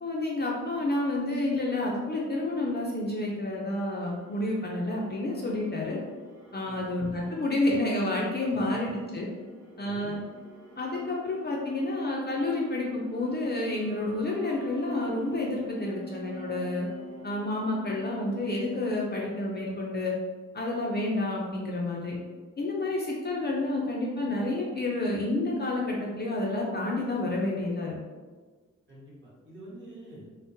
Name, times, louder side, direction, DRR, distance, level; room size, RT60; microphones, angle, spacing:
voice 1, 0.0-6.0 6.5-9.3 9.8-10.2 10.8-16.9 17.2-20.1 20.5-22.2 22.6-27.9, left 2 dB, 35° left, -3 dB, 0.4 m, -29 dB
sound 1, 3.7-20.0, right 1 dB, 10° right, 0.8 m, -48 dB
voice 2, 6.6-7.0 8.5-8.6 9.8-10.1 28.9-30.2, right 1 dB, 40° right, -7 dB, 1.0 m, -47 dB
3.6 x 2.0 x 2.6 m, 1.4 s
wide cardioid pair, 145°, 31 cm